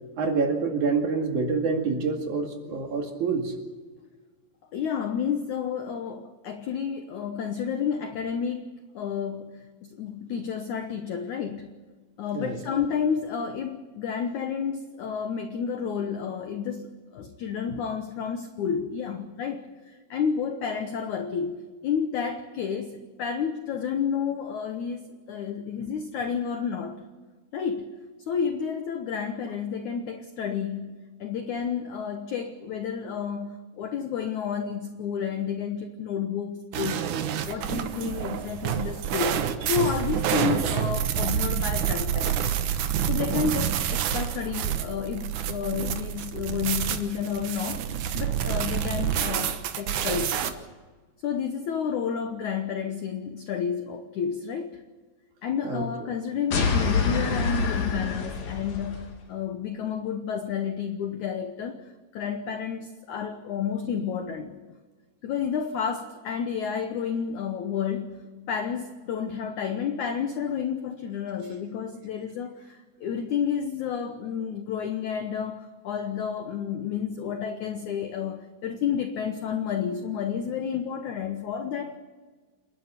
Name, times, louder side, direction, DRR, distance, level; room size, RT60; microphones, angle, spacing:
voice 1, 0.2-3.5 12.3-12.6 55.6-55.9, right 4 dB, 50° right, 3 dB, 3.2 m, -27 dB
voice 2, 4.7-11.7 12.2-27.0 27.5-28.0 28.3-37.1 37.4-42.6 43.1-50.5 51.2-54.8 55.4-64.6 65.2-82.0, left 7 dB, 80° left, 7 dB, 1.7 m, -31 dB
sound 1, 36.7-50.5, right 9 dB, 70° right, 1.9 m, -28 dB
sound 2, 56.5-59.1, left 4 dB, 45° left, 2.8 m, -26 dB
28.5 x 11.0 x 9.8 m, 1.4 s
omnidirectional pair, 5.0 m